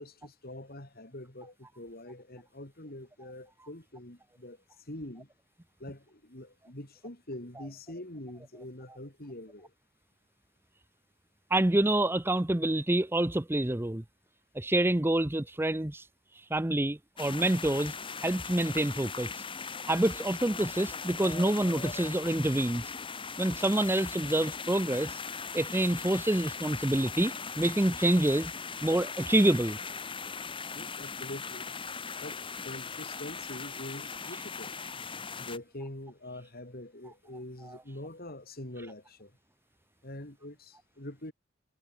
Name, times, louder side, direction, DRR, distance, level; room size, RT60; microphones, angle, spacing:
voice 1, 0.0-5.3 5.8-9.7 30.7-31.7 32.2-34.8 35.4-39.4 40.0-41.3, left 1 dB, 50° left, 3.8 m, -44 dB
voice 2, 11.5-14.0 14.5-16.0 16.5-18.0 18.2-19.4 19.9-22.8 23.4-25.2 25.5-28.5 28.8-29.8 37.7-37.8, right 1 dB, 10° right, 0.6 m, -27 dB
sound 1, 17.2-35.6, left 5 dB, 25° left, 2.5 m, -39 dB
head